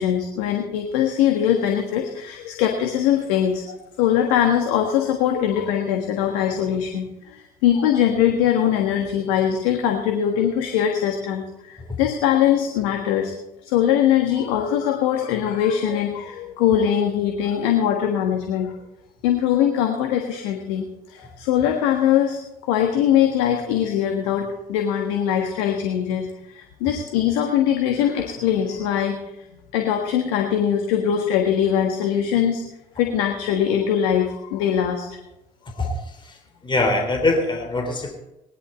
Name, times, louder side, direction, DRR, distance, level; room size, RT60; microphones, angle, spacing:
voice 1, 0.0-13.3 13.6-18.8 19.2-29.3 29.7-32.7 32.9-35.2, left 9 dB, 75° left, 3 dB, 1.5 m, -22 dB
voice 2, 36.6-38.2, left 2 dB, 25° left, 3 dB, 3.4 m, -23 dB
19.5 x 11.0 x 4.4 m, 0.92 s
hypercardioid pair, 50°, 19 cm